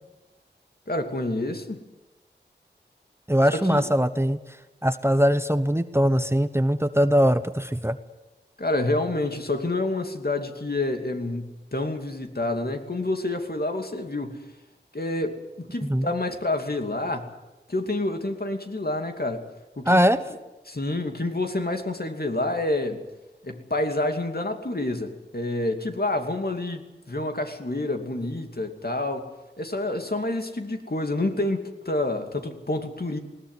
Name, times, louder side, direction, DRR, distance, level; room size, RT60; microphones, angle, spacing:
voice 1, 0.9-1.8 3.5-3.8 8.6-14.4 14.9-17.3 17.7-19.4 19.8-20.0 20.7-23.0 23.4-29.3 29.6-33.2, left 2 dB, 60° left, 5 dB, 2.7 m, -28 dB
voice 2, 3.3-4.4 4.8-8.0 15.8-16.1 19.9-20.2, equal, 15° right, 11 dB, 1.0 m, -21 dB
20.0 x 18.5 x 9.6 m, 1.0 s
wide cardioid pair, 50°, 18 cm